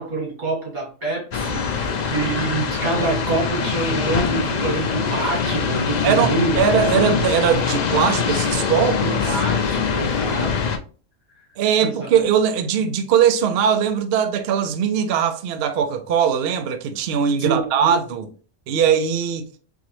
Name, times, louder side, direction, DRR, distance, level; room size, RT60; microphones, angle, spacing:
voice 1, 0.0-6.6 9.0-10.8 11.8-12.1 17.4-18.0, right 3 dB, 90° right, 2.3 m, -26 dB
sound 1, 1.3-10.8, left 6 dB, 80° left, 0.3 m, -23 dB
voice 2, 6.0-9.4 11.6-18.3 18.7-19.5, right 8 dB, 60° right, 0.7 m, -20 dB
3.9 x 2.9 x 3.0 m
omnidirectional pair, 1.4 m